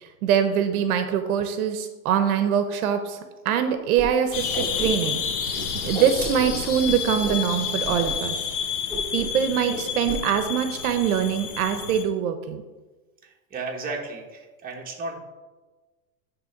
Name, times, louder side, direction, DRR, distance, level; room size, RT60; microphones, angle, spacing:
voice 1, 0.0-3.2 3.4-5.2 5.8-8.4 9.1-12.6, right 8 dB, 70° right, 8 dB, 0.9 m, -23 dB
Whoosh swoosh swish, 3.9-4.1 4.3-5.3 5.5-7.4 7.8-8.1 8.4-8.5 8.9-9.4 9.7-10.2, right 2 dB, 5° left, 2.7 m, -33 dB
sound 1, 4.3-12.0, left 7 dB, 40° left, 0.9 m, -30 dB
voice 2, 13.2-15.2, right 3 dB, 20° right, -1 dB, 1.4 m, -34 dB
9.6 x 3.5 x 5.8 m, 1.2 s
supercardioid pair, 140°, 44 cm